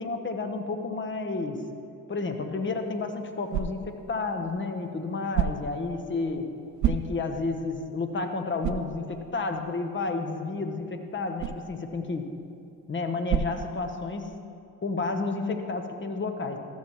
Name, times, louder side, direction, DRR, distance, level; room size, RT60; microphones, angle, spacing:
voice 1, 0.0-1.6 2.1-6.5 6.9-12.3 12.9-14.3 14.8-16.6, left 3 dB, 30° left, 6 dB, 1.1 m, -31 dB
sound 1, 2.6-14.4, right 8 dB, 45° right, 0.5 m, -35 dB
13.5 x 7.3 x 3.1 m, 2.5 s
hypercardioid pair, 55°, 40 cm